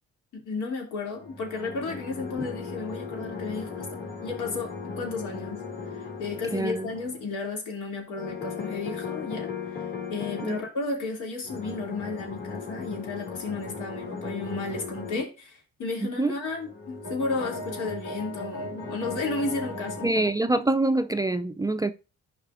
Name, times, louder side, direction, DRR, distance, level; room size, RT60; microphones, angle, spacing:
voice 1, 0.3-3.9 4.2-5.7 6.2-9.8 10.1-20.2 20.5-20.6, left 3 dB, 85° left, 2.8 m, -33 dB
sound 1, 1.2-7.3 8.1-10.7 11.4-15.2 16.6-20.3, left 4 dB, 40° left, 2.7 m, -37 dB
voice 2, 6.5-6.9 10.4-10.6 16.0-16.3 20.0-21.9, right 2 dB, 15° right, 0.3 m, -25 dB
12.0 x 4.9 x 2.5 m
cardioid pair, 90°, 30 cm